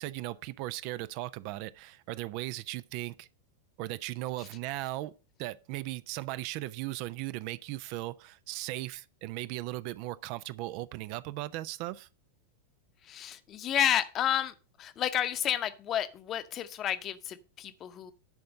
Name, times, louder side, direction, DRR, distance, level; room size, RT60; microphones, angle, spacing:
voice 1, 0.0-3.3 3.8-5.1 5.4-12.1, right 17 dB, 45° right, 0.4 m, -37 dB
voice 2, 13.0-18.1, left 10 dB, 30° left, 0.9 m, -31 dB
10.5 x 4.3 x 6.4 m
figure-of-eight pair, 90°, 0 cm